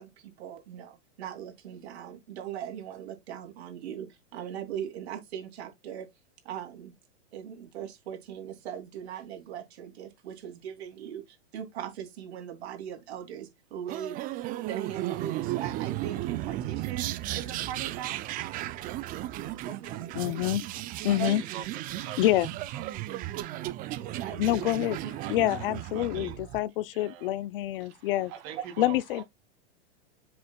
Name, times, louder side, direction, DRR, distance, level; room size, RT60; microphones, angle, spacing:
voice 1, 0.0-6.1 6.4-6.9 7.3-18.8 19.6-20.4 21.1-21.3 22.0-22.1 24.0-24.6 25.0-25.4, right 9 dB, 65° right, 3.2 m, -40 dB
sound 1, 13.9-26.6, right 14 dB, 25° right, 0.6 m, -35 dB
voice 2, 20.2-20.6 21.0-21.4 22.2-22.5 24.4-25.0 25.3-28.3 28.8-29.2, left 14 dB, 50° left, 0.6 m, -27 dB
voice 3, 21.1-22.4 22.7-22.9 25.2-25.3 25.9-26.4 26.9-27.3 27.8-29.2, right 9 dB, 40° right, 2.3 m, -42 dB
7.7 x 6.6 x 2.3 m
hypercardioid pair, 135°, 34 cm